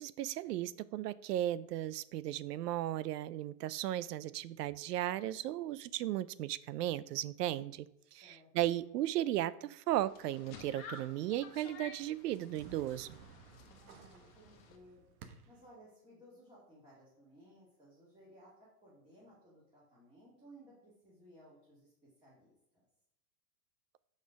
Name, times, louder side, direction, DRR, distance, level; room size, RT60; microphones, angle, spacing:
voice 1, 0.0-7.9 8.1-13.2, right 13 dB, 80° right, 18 dB, 0.6 m, -36 dB
voice 2, 8.2-8.9 13.6-15.0 15.5-21.9 22.2-22.8, equal, 10° right, -8 dB, 2.2 m, -60 dB
sound 1, 9.9-14.8, left 5 dB, 40° left, 1.3 m, -53 dB
sound 2, 12.5-15.7, right 6 dB, 65° right, 1.2 m, -56 dB
6.4 x 5.5 x 5.1 m, 0.79 s
supercardioid pair, 145°, 47 cm